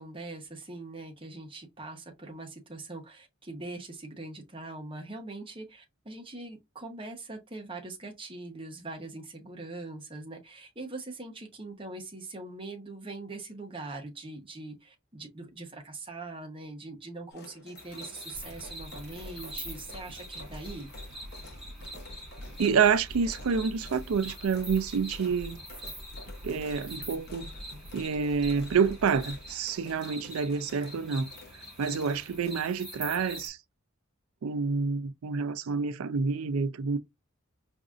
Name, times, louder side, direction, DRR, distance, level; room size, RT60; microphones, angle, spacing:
voice 1, 0.0-20.9, right 2 dB, 25° right, 0.9 m, -42 dB
sound 1, 17.3-32.5, left 2 dB, 50° left, 0.9 m, -52 dB
sound 2, 17.8-33.5, equal, ahead, 1.7 m, -45 dB
sound 3, 18.3-30.8, equal, 55° right, 0.7 m, -46 dB
voice 2, 22.6-25.6 26.4-27.5 27.9-31.3 31.8-33.6 34.4-37.0, right 5 dB, 85° right, 0.4 m, -28 dB
4.9 x 2.6 x 2.4 m
head